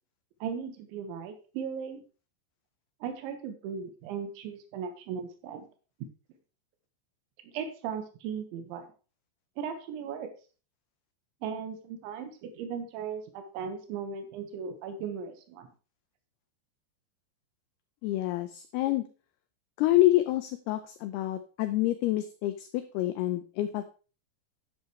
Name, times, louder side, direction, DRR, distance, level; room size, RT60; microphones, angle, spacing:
voice 1, 0.4-2.0 3.0-5.7 7.4-8.9 9.6-10.3 11.4-15.7, right 7 dB, 85° right, 6 dB, 3.6 m, -37 dB
voice 2, 18.0-19.0 19.8-23.9, left 15 dB, 85° left, 10 dB, 2.2 m, -27 dB
10.5 x 9.8 x 3.1 m, 0.35 s
omnidirectional pair, 5.3 m